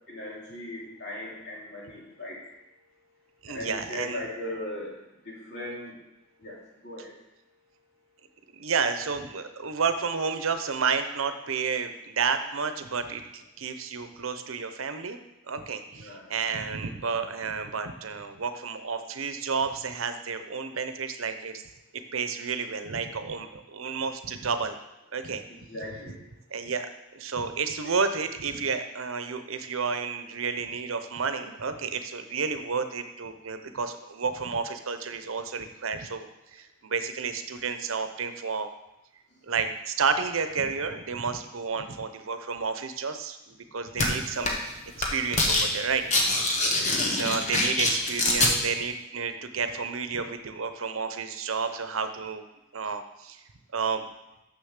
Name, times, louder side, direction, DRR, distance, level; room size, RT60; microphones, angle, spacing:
voice 1, 0.1-2.4 3.5-5.0 5.2-5.9 6.4-6.6 6.8-7.1 15.9-16.3 25.7-26.2 27.8-27.9 44.3-44.5 46.9-47.2, left 1 dB, 55° left, -4 dB, 2.8 m, -38 dB
voice 2, 3.4-4.2 8.5-15.2 15.5-21.6 22.1-24.8 25.1-25.4 26.5-36.3 36.5-38.7 39.5-44.6 45.1-46.0 46.6-52.4 52.7-53.4 53.7-54.0, right 5 dB, 85° right, 9 dB, 0.8 m, -31 dB
sound 1, 44.0-44.1 44.4-44.7 45.0-45.7 45.9-48.5, left 2 dB, 35° left, 1.3 m, -24 dB
6.7 x 6.5 x 6.6 m, 0.92 s
head